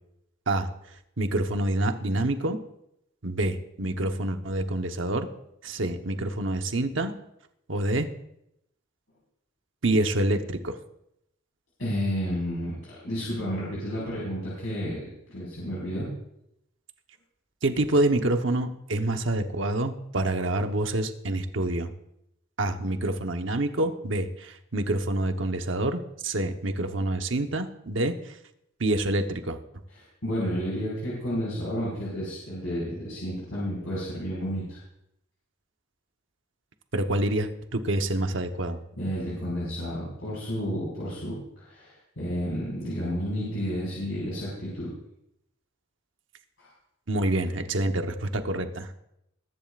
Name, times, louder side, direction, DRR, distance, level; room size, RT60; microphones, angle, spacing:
voice 1, 1.2-2.6 3.2-5.3 5.6-7.1 7.7-8.1 9.8-10.7 17.6-21.9 22.6-28.1 28.8-29.6 36.9-38.8 47.1-48.9, right 1 dB, 70° right, 6 dB, 1.0 m, -27 dB
voice 2, 11.8-16.1 29.9-34.8 39.0-44.9 46.6-46.7, equal, 80° left, -7 dB, 5.1 m, -31 dB
21.5 x 11.0 x 2.5 m, 0.79 s
head